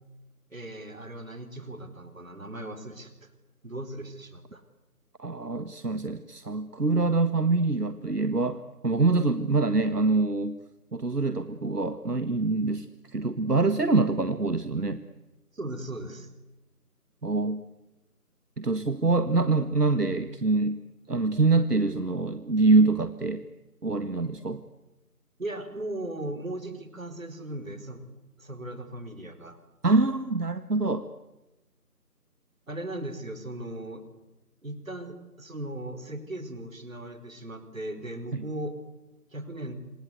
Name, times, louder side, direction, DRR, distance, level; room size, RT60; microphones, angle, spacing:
voice 1, 0.5-3.3 3.6-4.6 15.5-16.3 25.4-28.1 28.4-29.6 32.7-34.0 34.6-38.7 39.3-39.7, right 1 dB, 55° right, 10 dB, 4.6 m, -37 dB
voice 2, 5.2-10.6 10.9-12.9 13.1-15.0 17.2-17.6 18.6-20.8 21.1-23.4 23.8-24.6 29.8-31.1 38.3-38.4, right 3 dB, 80° right, 11 dB, 1.8 m, -25 dB
27.5 x 26.5 x 8.2 m, 1.0 s
figure-of-eight pair, 170°, 47 cm